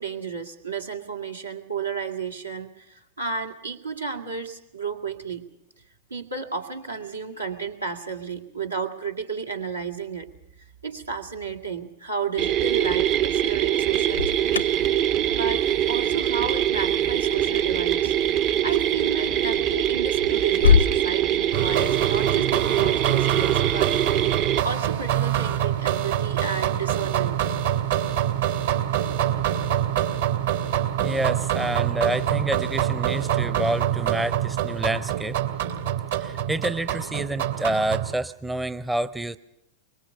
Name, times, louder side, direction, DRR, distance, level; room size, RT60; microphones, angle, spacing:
voice 1, 0.0-5.4 6.1-10.3 10.8-14.7 15.3-18.1 18.4-24.0 24.6-27.4, right 5 dB, 80° right, 3 dB, 2.2 m, -32 dB
sound 1, 12.4-24.6, right 11 dB, 40° right, 0.8 m, -23 dB
Alarm, 13.8-20.9, left 6 dB, 75° left, 0.7 m, -28 dB
sound 2, 21.5-38.2, right 11 dB, 65° right, 2.6 m, -25 dB
voice 2, 31.0-35.4 36.2-39.4, right 1 dB, 10° right, 13 dB, 0.7 m, -28 dB
24.0 x 22.0 x 6.0 m, 0.83 s
figure-of-eight pair, 90°, 0 cm